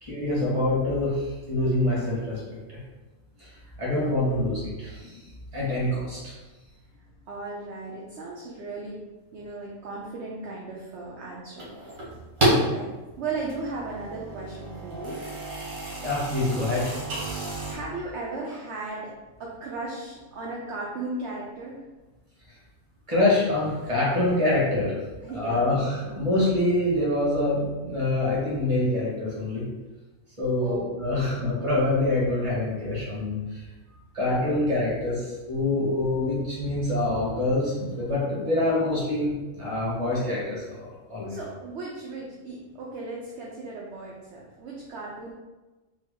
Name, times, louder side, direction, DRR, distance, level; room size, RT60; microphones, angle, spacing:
voice 1, 0.0-2.4 2.7-2.8 3.4-3.5 3.8-5.2 5.5-6.3 16.0-17.0 23.1-25.0 25.3-29.6 30.4-33.7 34.1-41.4, left 2 dB, 25° right, -7 dB, 1.3 m, -25 dB
voice 2, 6.9-9.0 9.3-12.0 12.4-12.9 13.2-15.2 17.7-19.1 19.4-21.8 25.2-25.8 30.6-31.5 41.3-45.3, right 3 dB, 60° right, -4 dB, 0.8 m, -36 dB
sound 1, 11.6-12.7 13.3-17.8, right 1 dB, 80° right, 1.5 m, -29 dB
4.1 x 2.0 x 3.6 m, 1.2 s
omnidirectional pair, 1.5 m